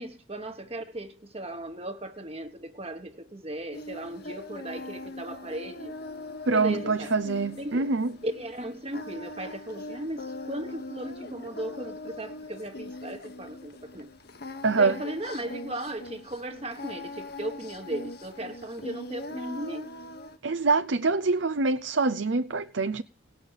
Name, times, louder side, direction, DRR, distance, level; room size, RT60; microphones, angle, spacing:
voice 1, 0.0-6.0 6.5-7.1 7.6-8.0 8.2-14.1 14.7-19.9, right 1 dB, 30° right, 1.3 m, -37 dB
Singing, 3.7-20.4, left 2 dB, 50° left, 1.4 m, -41 dB
voice 2, 6.5-8.1 14.6-14.9 20.4-23.0, right 3 dB, 70° right, 0.7 m, -25 dB
18.0 x 6.6 x 9.0 m
head